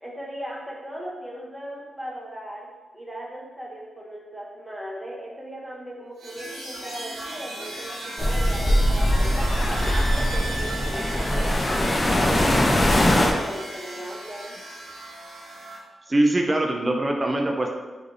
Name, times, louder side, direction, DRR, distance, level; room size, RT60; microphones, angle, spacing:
voice 1, 0.0-2.7 2.9-9.8 10.1-14.6, equal, 10° right, -4 dB, 0.7 m, -38 dB
sound 1, 6.2-15.8, right 1 dB, 80° right, 0.9 m, -37 dB
sound 2, 8.2-13.3, left 1 dB, 30° left, 0.5 m, -21 dB
sound 3, 9.8-13.0 13.3-13.4, right 1 dB, 50° right, 0.9 m, -35 dB
voice 2, 16.1-17.8, right 1 dB, 30° right, 2 dB, 0.4 m, -22 dB
3.1 x 2.6 x 3.7 m, 1.3 s
cardioid pair, 80°, 0 cm